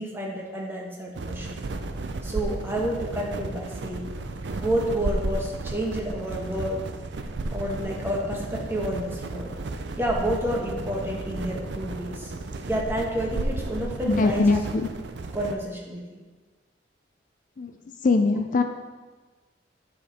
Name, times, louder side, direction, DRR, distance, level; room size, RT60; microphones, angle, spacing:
voice 1, 0.0-1.5 2.2-4.1 4.6-6.8 7.5-9.5 10.0-12.3 12.6-14.4 15.3-16.2, equal, 15° right, -2 dB, 1.2 m, -29 dB
sound 1, 1.2-15.6, right 2 dB, 75° right, 0.5 m, -33 dB
voice 2, 14.1-14.9 17.6-18.6, left 3 dB, 45° left, 6 dB, 0.4 m, -22 dB
9.1 x 5.1 x 4.2 m, 1.3 s
head